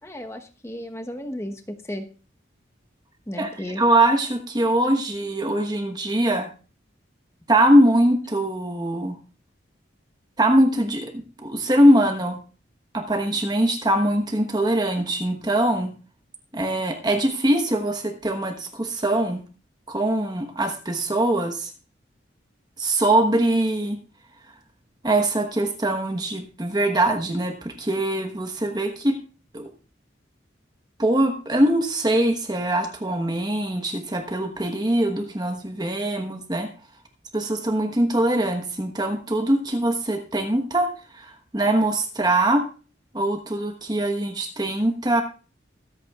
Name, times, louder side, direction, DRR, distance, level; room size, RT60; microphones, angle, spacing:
voice 1, 0.0-2.1 3.3-3.8, equal, 15° left, 5 dB, 1.0 m, -34 dB
voice 2, 3.8-6.5 7.5-9.2 10.4-12.4 12.9-15.9 16.5-19.4 19.9-21.7 22.8-24.0 25.0-29.2 29.5-29.7 31.0-36.7 37.3-42.6 43.1-45.2, right 1 dB, 20° right, 4 dB, 1.1 m, -22 dB
23.5 x 8.3 x 2.4 m, 0.36 s
head